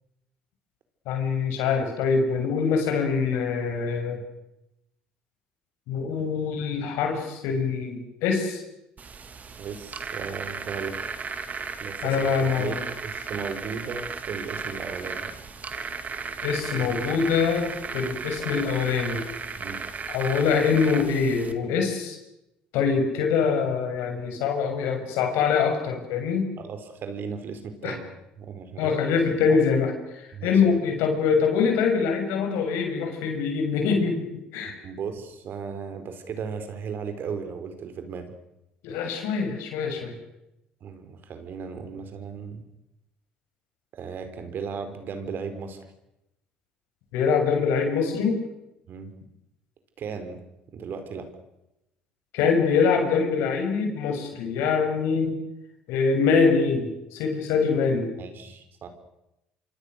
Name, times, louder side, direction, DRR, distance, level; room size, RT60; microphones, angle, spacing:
voice 1, 1.1-4.2 5.9-8.6 12.0-12.8 16.4-19.2 20.1-22.2 22.7-26.5 27.8-27.9 28.8-34.2 34.5-34.8 38.8-40.1 47.1-48.4 52.3-55.4 55.9-58.1, left 5 dB, 75° left, 4 dB, 6.6 m, -24 dB
sound 1, 9.0-21.5, right 5 dB, 40° right, 3.1 m, -35 dB
voice 2, 9.6-11.0 11.8-15.3 19.6-19.8 26.6-28.1 28.4-28.9 29.5-29.6 30.3-30.6 34.6-38.3 40.8-42.6 43.9-45.9 48.9-49.1 50.0-50.4 50.7-51.3 58.2-58.9, right 6 dB, 55° right, 8 dB, 4.7 m, -36 dB
26.0 x 26.0 x 6.7 m, 0.88 s
hypercardioid pair, 65°, 4 cm